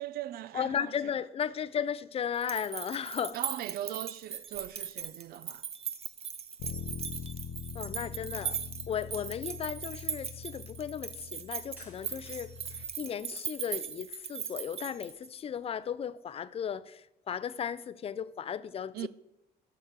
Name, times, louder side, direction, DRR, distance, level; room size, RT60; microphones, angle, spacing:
voice 1, 0.0-1.2 3.3-5.7 18.9-19.1, right 13 dB, 65° right, 0.4 m, -39 dB
voice 2, 0.5-3.4 7.7-8.6 8.9-19.1, left 8 dB, 35° left, 0.4 m, -35 dB
sound 1, 1.7-2.0 2.4-3.2 4.4-5.6 5.9-6.1 11.7-13.6 14.1-15.0, equal, 10° right, 3.5 m, -61 dB
sound 2, 2.3-15.4, right 7 dB, 35° right, 0.7 m, -39 dB
Bass guitar, 6.6-12.8, left 6 dB, 70° left, 0.8 m, -43 dB
7.2 x 6.1 x 6.5 m
cardioid pair, 110°, 17 cm